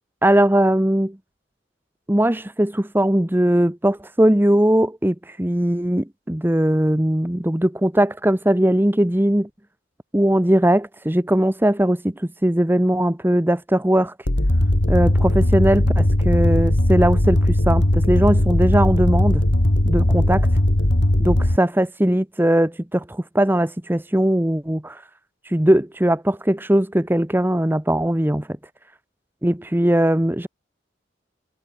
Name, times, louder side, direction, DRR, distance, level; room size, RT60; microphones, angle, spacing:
voice 1, 0.2-1.2 2.1-9.5 10.1-14.1 14.9-19.4 19.8-20.5 21.2-25.0 25.5-28.5 29.4-30.5, right 1 dB, 10° right, 1.0 m, -19 dB
sound 1, 14.3-21.6, left 1 dB, 80° left, 2.4 m, -18 dB
head